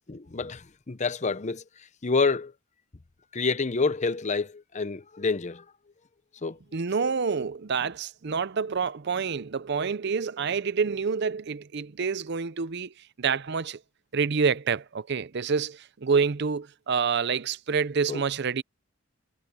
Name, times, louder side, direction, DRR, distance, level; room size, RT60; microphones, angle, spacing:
voice 1, 0.1-1.6 2.0-2.5 3.3-5.6 6.4-6.6 18.1-18.2, left 4 dB, 35° left, 0.7 m, -28 dB
voice 2, 6.7-13.8 14.1-18.6, right 5 dB, 55° right, 0.6 m, -27 dB
head